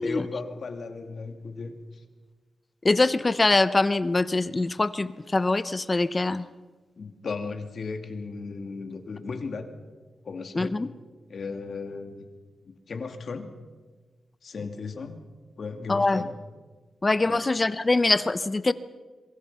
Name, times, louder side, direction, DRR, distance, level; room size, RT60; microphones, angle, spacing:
voice 1, 0.0-2.0 7.0-9.7 10.2-10.8 11.3-12.3 12.7-13.5 14.4-15.2 15.6-16.4 17.3-17.4, left 4 dB, 55° left, 6 dB, 2.5 m, -36 dB
voice 2, 2.8-6.4 10.6-10.9 15.9-16.2 17.0-18.7, left 2 dB, 25° left, 14 dB, 0.7 m, -23 dB
26.5 x 24.0 x 5.7 m, 1.3 s
wide cardioid pair, 135°, 0 cm